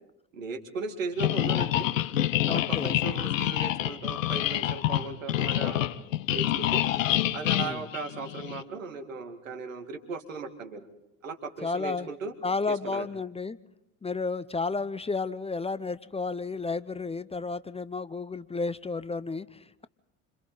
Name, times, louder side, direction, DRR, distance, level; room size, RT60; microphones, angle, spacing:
voice 1, 0.3-1.9 2.4-5.8 6.3-6.8 7.3-10.9 11.2-12.3 12.7-13.1, right 4 dB, 85° right, 6 dB, 2.2 m, -37 dB
sound 1, 1.2-8.6, left 13 dB, 80° left, 0.8 m, -27 dB
voice 2, 2.4-3.0 7.6-7.8 11.6-12.1 12.4-13.6 14.0-19.9, left 4 dB, 15° left, 16 dB, 0.8 m, -32 dB
28.5 x 26.5 x 4.0 m, 0.82 s
hypercardioid pair, 65°, 38 cm